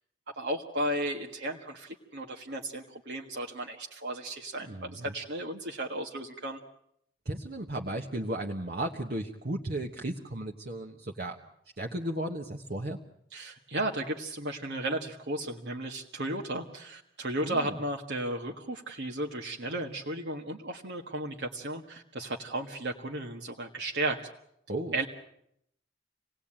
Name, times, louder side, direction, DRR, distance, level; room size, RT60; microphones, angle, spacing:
voice 1, 0.3-6.6 13.3-24.2 24.9-25.1, right 1 dB, 75° right, 1 dB, 1.7 m, -34 dB
voice 2, 4.6-5.1 7.2-11.4 11.8-13.0 17.4-17.8 24.7-25.1, right 1 dB, 60° right, 2 dB, 1.4 m, -35 dB
27.0 x 18.5 x 8.9 m, 0.76 s
head